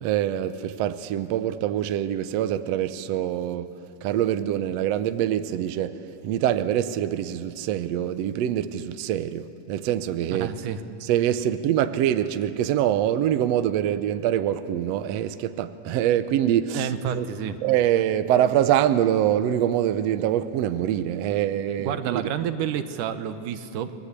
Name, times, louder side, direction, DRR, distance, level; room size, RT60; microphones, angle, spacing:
voice 1, 0.0-3.7 4.0-10.5 11.1-17.3 17.6-22.3, right 11 dB, 70° right, 1.8 m, -24 dB
voice 2, 10.3-10.8 16.7-17.6 21.8-23.9, right 9 dB, 90° right, 2.6 m, -29 dB
30.0 x 22.5 x 8.3 m
omnidirectional pair, 3.5 m